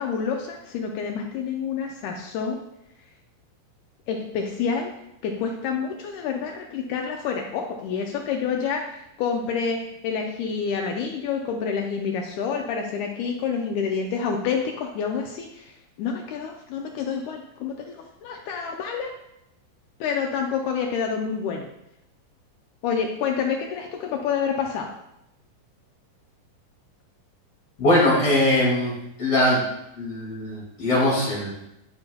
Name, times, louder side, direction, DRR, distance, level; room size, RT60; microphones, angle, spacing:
voice 1, 0.0-2.6 4.1-4.9 5.2-19.1 20.0-21.7 22.8-24.9, left 6 dB, 85° left, 2 dB, 1.7 m, -28 dB
voice 2, 27.8-28.9 29.2-29.6 30.0-31.5, left 1 dB, 45° left, -6 dB, 2.8 m, -21 dB
11.5 x 4.1 x 2.2 m, 0.82 s
omnidirectional pair, 4.1 m